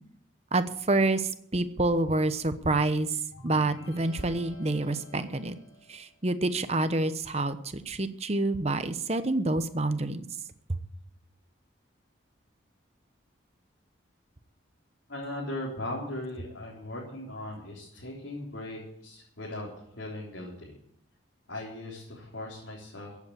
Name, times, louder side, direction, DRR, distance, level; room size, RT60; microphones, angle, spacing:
voice 1, 0.5-3.1 3.4-5.6 5.9-10.3 10.7-10.8, right 2 dB, 30° right, 11 dB, 0.9 m, -27 dB
sound 1, 3.3-6.1, left 1 dB, 90° left, 4.5 m, -48 dB
voice 2, 15.1-19.7 20.0-20.7 21.5-23.2, left 1 dB, 75° left, -4 dB, 3.9 m, -38 dB
15.5 x 8.4 x 8.3 m, 0.70 s
head